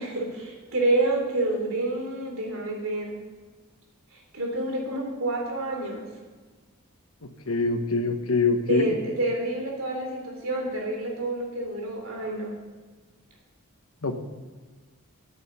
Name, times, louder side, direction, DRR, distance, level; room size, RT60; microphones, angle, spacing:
voice 1, 0.0-3.1 4.1-6.0 8.7-12.5, right 2 dB, 75° right, 0 dB, 3.4 m, -28 dB
voice 2, 7.5-8.9 14.0-14.2, left 3 dB, 80° left, 6 dB, 1.3 m, -24 dB
9.9 x 8.1 x 8.0 m, 1.4 s
head